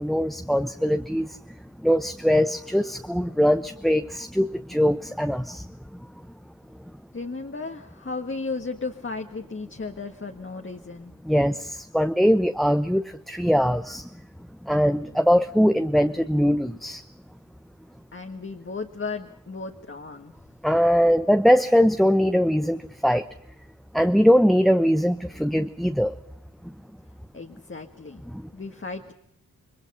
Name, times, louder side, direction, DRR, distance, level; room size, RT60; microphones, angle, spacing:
voice 1, 0.0-1.4 1.8-5.7 11.3-14.1 14.6-17.0 20.6-23.3 23.9-26.1 28.3-28.4, equal, ahead, 8 dB, 0.9 m, -21 dB
voice 2, 7.1-11.1 18.1-20.3 27.3-28.2 28.5-29.1, left 4 dB, 35° left, 4 dB, 1.7 m, -35 dB
29.0 x 22.0 x 5.5 m, 0.74 s
wide cardioid pair, 75°, 34 cm